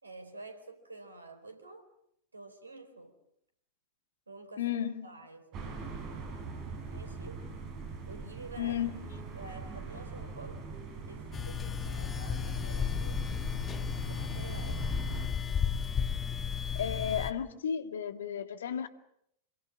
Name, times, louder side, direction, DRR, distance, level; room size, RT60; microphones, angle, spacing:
voice 1, 0.0-1.9 2.3-3.2 4.3-4.7 5.0-5.7 6.9-7.5 8.1-8.8 9.3-10.6 11.1-13.3 14.1-14.9, right 3 dB, 75° right, 10 dB, 4.3 m, -49 dB
voice 2, 4.6-5.1 8.6-9.1 16.7-18.9, left 9 dB, 65° left, 10 dB, 2.1 m, -33 dB
Wind excerpt, 5.5-15.3, right 4 dB, 35° right, 6.9 m, -41 dB
sound 1, 11.3-17.3, left 7 dB, 20° left, 1.8 m, -33 dB
27.0 x 23.0 x 7.5 m, 0.75 s
figure-of-eight pair, 90°, 0 cm